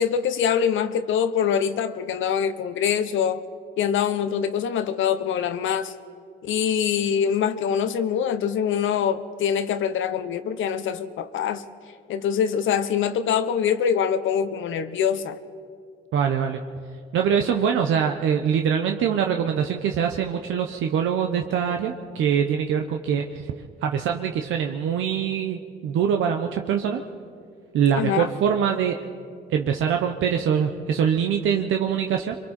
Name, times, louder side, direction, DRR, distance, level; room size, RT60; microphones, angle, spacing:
voice 1, 0.0-3.4 3.8-5.9 6.4-11.6 12.1-15.4 28.0-28.3, left 8 dB, 80° left, 11 dB, 1.0 m, -24 dB
voice 2, 16.1-16.6 17.1-23.4 23.8-27.0 27.7-29.0 29.5-32.4, right 8 dB, 80° right, 4 dB, 0.9 m, -23 dB
26.5 x 23.0 x 4.4 m, 2.3 s
cardioid pair, 90°, 20 cm